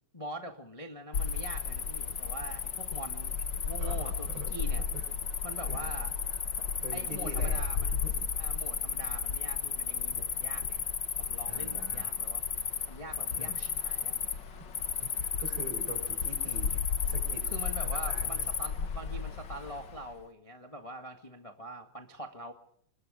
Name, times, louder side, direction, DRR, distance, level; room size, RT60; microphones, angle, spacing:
voice 1, 0.1-4.8 5.4-6.1 6.9-7.9 8.4-10.8 11.2-14.1 17.5-22.5, right 1 dB, 30° left, 4 dB, 0.6 m, -44 dB
Cricket, 1.1-20.0, left 6 dB, 70° left, 1.0 m, -33 dB
voice 2, 3.8-4.5 4.9-5.4 5.7-5.9 6.3-7.6 7.9-8.3 11.5-12.1 13.4-13.6 15.0-17.5 17.8-18.5 18.8-18.9, right 2 dB, 70° right, 6 dB, 7.2 m, -45 dB
27.0 x 22.0 x 5.2 m, 0.65 s
omnidirectional pair, 4.2 m